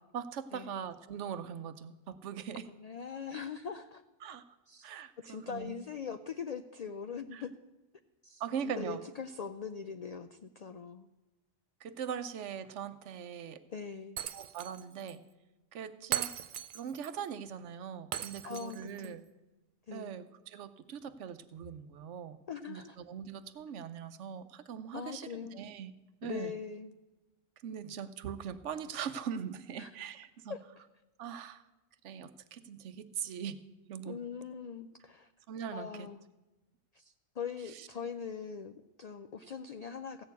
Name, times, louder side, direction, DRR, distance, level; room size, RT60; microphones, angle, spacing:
voice 1, 0.1-2.7 4.2-4.6 4.8-5.8 7.3-7.4 8.4-9.0 11.8-13.6 14.3-15.2 15.7-16.3 16.7-19.2 19.9-22.4 22.7-25.9 26.2-26.5 27.6-30.6 31.2-31.6 32.0-33.6 33.9-34.2 35.5-36.1 37.7-37.9, right 8 dB, 75° right, 13 dB, 1.0 m, -41 dB
voice 2, 2.8-4.0 4.7-4.9 5.3-7.6 8.2-11.1 13.7-14.2 18.4-19.1 19.9-20.1 22.5-23.0 24.9-25.6 26.2-26.9 29.8-29.9 30.5-30.8 34.1-35.3 35.7-36.2 36.9-40.2, left 6 dB, 70° left, 10 dB, 0.3 m, -42 dB
Shatter, 14.2-14.8 15.1-15.2 16.1-17.1 18.1-19.1, right 10 dB, 60° right, 0.5 m, -38 dB
15.0 x 6.7 x 8.2 m, 1.1 s
omnidirectional pair, 1.2 m